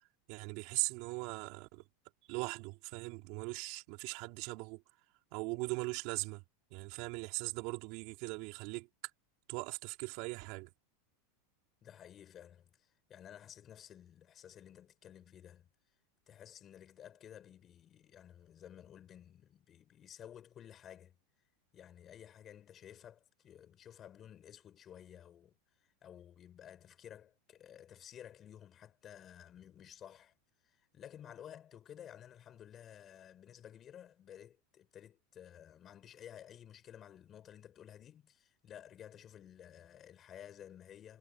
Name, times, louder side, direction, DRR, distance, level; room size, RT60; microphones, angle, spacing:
voice 1, 0.3-1.8 2.3-4.8 5.3-6.4 6.7-8.9 9.5-10.7, right 26 dB, 55° right, 3.8 m, -39 dB
voice 2, 11.8-15.7 16.3-21.2 21.7-30.3 30.6-41.2, left 10 dB, 30° left, 6.3 m, -54 dB
supercardioid pair, 135°, 0 cm